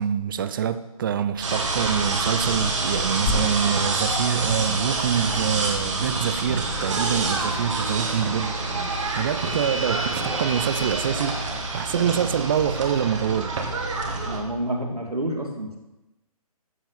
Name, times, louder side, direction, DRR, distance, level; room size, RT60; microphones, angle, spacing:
voice 1, 0.0-8.7 9.1-11.4 11.7-13.6, right 8 dB, 35° right, 0.7 m, -25 dB
sound 1, 1.4-14.4, right 3 dB, 55° right, 2.4 m, -27 dB
Tearing, 2.2-13.9, left 3 dB, 25° left, 2.5 m, -39 dB
voice 2, 14.3-15.8, right 1 dB, 80° right, 2.7 m, -28 dB
14.0 x 7.9 x 6.0 m
figure-of-eight pair, 135°, 19 cm